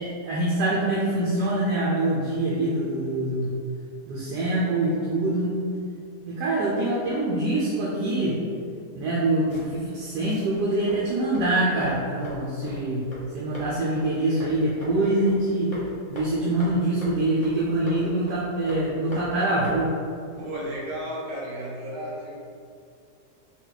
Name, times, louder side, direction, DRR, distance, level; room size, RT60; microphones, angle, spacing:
voice 1, 0.0-3.5 4.1-5.6 6.3-8.4 8.9-13.0 13.3-15.8 16.1-19.9, right 1 dB, 85° right, -6 dB, 1.2 m, -25 dB
sound 1, 9.4-21.0, equal, 25° left, 0.8 m, -43 dB
voice 2, 20.4-22.4, equal, 40° right, -5 dB, 0.7 m, -33 dB
4.0 x 2.3 x 3.9 m, 2.4 s
omnidirectional pair, 1.8 m